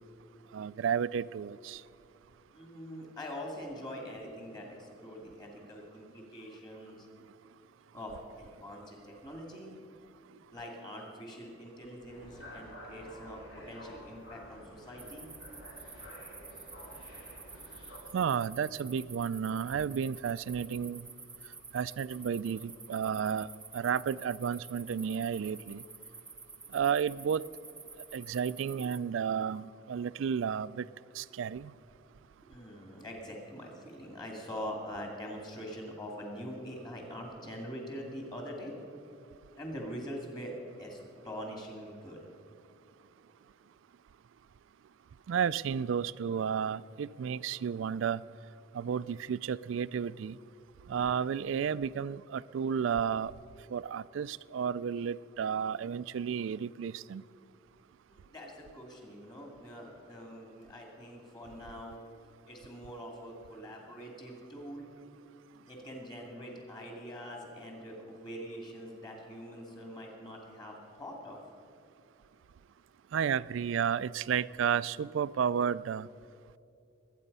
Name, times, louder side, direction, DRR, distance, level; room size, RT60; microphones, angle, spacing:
voice 1, 0.5-1.8 18.1-21.1 21.7-23.5 23.7-25.8 26.7-27.4 28.1-30.9 31.1-31.7 45.3-48.2 48.7-50.4 50.9-53.3 53.7-57.2 73.1-76.1, right 7 dB, 75° right, 19 dB, 0.3 m, -32 dB
voice 2, 2.5-7.1 7.9-9.7 10.5-15.3 32.4-38.7 39.6-40.5 40.8-41.0 41.2-42.2 58.1-62.0 62.4-64.9 65.6-71.4, equal, 20° left, 0 dB, 2.5 m, -44 dB
sound 1, 12.1-18.0, equal, 80° left, 4.2 m, -50 dB
sound 2, 15.0-29.0, right 4 dB, 5° right, 0.4 m, -50 dB
22.0 x 9.0 x 5.5 m, 2.6 s
head